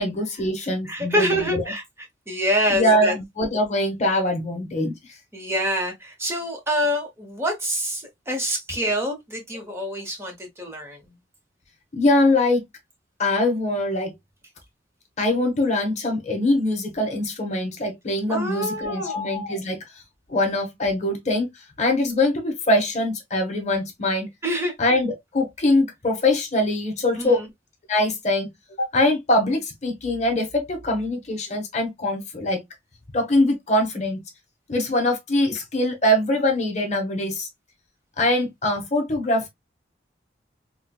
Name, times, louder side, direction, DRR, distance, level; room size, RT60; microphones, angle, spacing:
voice 1, 0.0-1.6 2.7-5.0 11.9-12.6 13.2-14.1 15.2-19.8 20.3-24.3 24.8-27.4 27.9-28.5 28.8-32.6 33.1-34.2 34.7-37.5 38.2-39.5, left 1 dB, 40° left, 0.9 m, -23 dB
voice 2, 0.8-1.8 2.3-3.1 5.3-11.2 18.3-19.2 24.4-24.7 27.2-27.5, equal, 15° right, 1.0 m, -26 dB
4.4 x 2.2 x 2.2 m
head